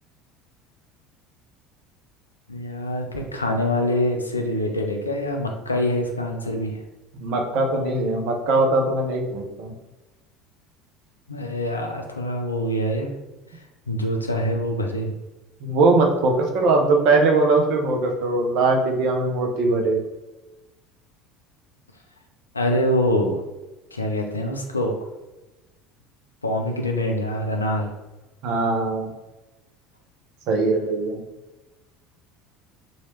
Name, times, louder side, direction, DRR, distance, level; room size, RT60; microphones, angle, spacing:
voice 1, 2.5-6.8 11.3-13.1 13.9-15.1 22.5-23.4 23.9-25.0 26.4-27.9, left 1 dB, 90° left, 2 dB, 0.4 m, -25 dB
voice 2, 7.2-9.7 15.6-20.0 28.4-29.1 30.5-31.2, right 3 dB, 55° right, 2 dB, 0.7 m, -21 dB
2.9 x 2.7 x 3.1 m, 1.1 s
figure-of-eight pair, 65°, 0 cm